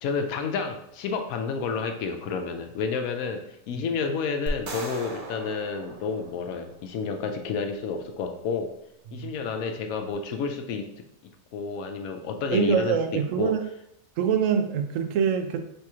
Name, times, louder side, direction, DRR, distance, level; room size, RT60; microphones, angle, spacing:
voice 1, 0.0-8.7 9.1-10.9 11.5-13.0 13.4-13.6, left 5 dB, 85° left, 6 dB, 1.0 m, -30 dB
sound 1, 4.5-6.8, right 1 dB, 50° right, 0.6 m, -37 dB
voice 2, 12.5-13.6 14.2-15.6, right 7 dB, 75° right, 7 dB, 0.9 m, -24 dB
3.4 x 2.9 x 4.7 m, 0.76 s
omnidirectional pair, 1.4 m